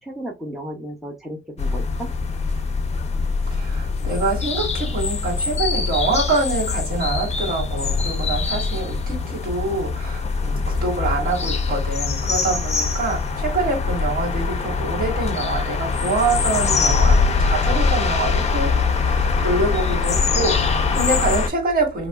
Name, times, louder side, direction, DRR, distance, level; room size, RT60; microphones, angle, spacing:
voice 1, 0.0-2.1, right 1 dB, ahead, 0.7 m, -34 dB
sound 1, 1.6-21.5, left 4 dB, 35° left, 0.5 m, -22 dB
voice 2, 3.5-22.1, right 3 dB, 50° right, 2.1 m, -25 dB
4.4 x 2.9 x 2.3 m
wide cardioid pair, 170°, 19 cm